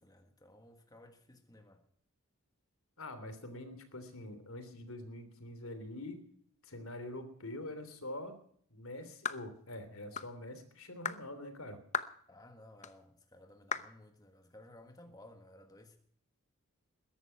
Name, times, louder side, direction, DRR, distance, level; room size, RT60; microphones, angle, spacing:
voice 1, 0.0-1.8 12.3-16.0, left 1 dB, 15° left, 1.5 m, -57 dB
voice 2, 3.0-6.2 6.6-8.4 8.7-11.8, left 1 dB, 70° left, 3.2 m, -45 dB
sound 1, 9.2-9.5 10.2-10.3 11.0-11.2 11.9-12.2 12.8-12.9 13.7-13.9, left 7 dB, 30° left, 0.8 m, -36 dB
21.5 x 11.5 x 5.8 m
head